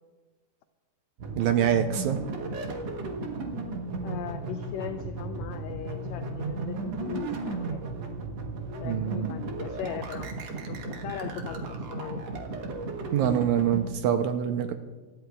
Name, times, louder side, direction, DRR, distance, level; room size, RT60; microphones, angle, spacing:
sound 1, 1.2-13.9, right 3 dB, 60° right, 2.0 m, -35 dB
voice 1, 1.4-2.2 8.8-9.3 13.1-14.7, right 9 dB, 80° right, 7 dB, 1.8 m, -25 dB
voice 2, 4.0-7.8 8.8-10.3 10.6-12.2, left 10 dB, 90° left, 8 dB, 1.5 m, -39 dB
26.0 x 13.0 x 2.3 m, 1.3 s
omnidirectional pair, 3.7 m